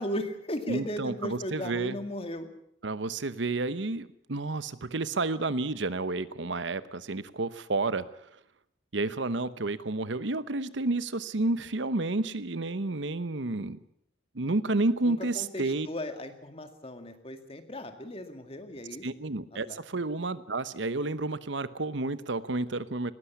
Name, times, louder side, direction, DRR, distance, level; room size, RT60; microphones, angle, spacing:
voice 1, 0.0-2.5 15.0-19.1 19.5-19.8, left 1 dB, 30° left, 7 dB, 2.1 m, -37 dB
voice 2, 0.7-2.0 2.8-8.1 8.9-13.8 14.3-15.9 19.0-23.1, right 2 dB, 65° right, 15 dB, 0.9 m, -30 dB
20.0 x 16.0 x 8.5 m, 0.72 s
head